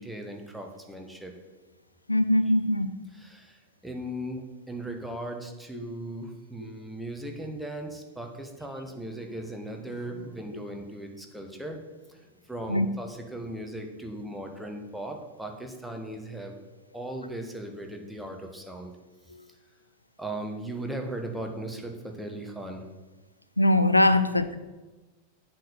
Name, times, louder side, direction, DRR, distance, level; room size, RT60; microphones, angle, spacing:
voice 1, 0.0-1.4 3.1-11.8 12.1-16.5 16.9-19.0 20.2-22.8 24.1-24.2, right 1 dB, 5° right, 3 dB, 1.2 m, -38 dB
voice 2, 2.1-2.9 5.7-5.9 12.7-12.9 19.3-19.4 23.6-24.5, left 1 dB, 85° left, 12 dB, 0.3 m, -22 dB
8.0 x 4.4 x 6.7 m, 1.2 s
figure-of-eight pair, 90°, 0 cm